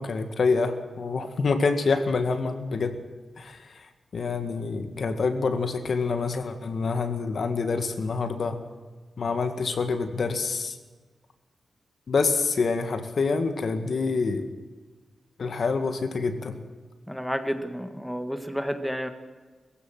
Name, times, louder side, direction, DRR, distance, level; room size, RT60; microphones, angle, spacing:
voice 1, 0.0-3.0 3.4-3.6 4.1-8.6 9.2-10.8 12.1-14.4 15.4-16.6, left 4 dB, 60° left, 8 dB, 2.0 m, -26 dB
voice 2, 17.1-19.1, equal, ahead, 8 dB, 1.6 m, -30 dB
22.0 x 15.5 x 7.7 m, 1.4 s
wide cardioid pair, 115°, 0 cm